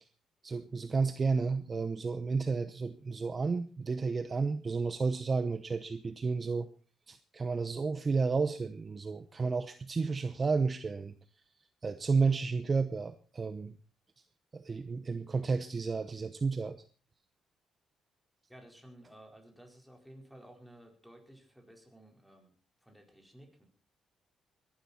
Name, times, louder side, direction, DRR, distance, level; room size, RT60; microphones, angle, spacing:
voice 1, 0.4-6.7 7.1-11.1 11.8-13.7 14.5-16.8, right 4 dB, 35° right, 10 dB, 0.9 m, -32 dB
voice 2, 18.5-22.5 22.8-23.6, right 1 dB, ahead, 2 dB, 4.7 m, -55 dB
20.5 x 11.5 x 4.4 m, 0.38 s
cardioid pair, 90°, 0 cm